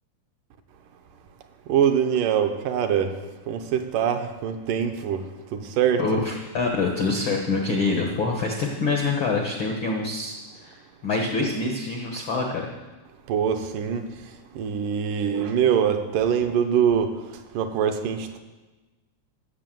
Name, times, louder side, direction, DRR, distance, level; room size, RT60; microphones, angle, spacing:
voice 1, 1.7-3.1 3.5-5.2 5.5-6.2 13.3-14.0 14.6-17.1 17.6-18.4, right 8 dB, 75° right, 7 dB, 2.3 m, -23 dB
voice 2, 6.0-12.7, left 3 dB, 70° left, 1 dB, 1.2 m, -26 dB
13.0 x 7.4 x 7.6 m, 1.2 s
omnidirectional pair, 4.1 m